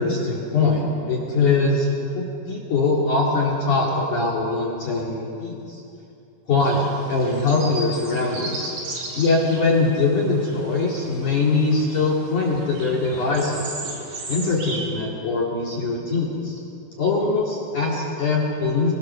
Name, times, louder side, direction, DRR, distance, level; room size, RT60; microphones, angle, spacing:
voice 1, 0.0-1.9 2.1-5.8 6.5-8.7 9.1-13.8 14.3-16.6 17.0-18.9, left 3 dB, 45° left, -4 dB, 3.2 m, -22 dB
sound 1, 6.6-14.9, right 2 dB, 40° right, 3.9 m, -36 dB
27.0 x 20.5 x 6.7 m, 2.6 s
omnidirectional pair, 6.0 m